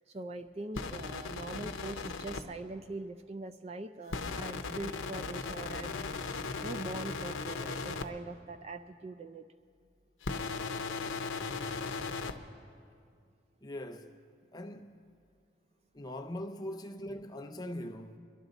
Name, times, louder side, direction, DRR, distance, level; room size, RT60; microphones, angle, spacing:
voice 1, 0.1-6.0 6.6-9.5, right 2 dB, 30° right, 0.3 m, -42 dB
sound 1, 0.7-2.4 4.1-8.0 10.2-12.3, left 4 dB, 85° left, 0.7 m, -37 dB
voice 2, 13.6-14.2 14.5-15.1 15.9-18.2, left 1 dB, 20° left, 0.6 m, -41 dB
23.0 x 12.0 x 4.0 m
head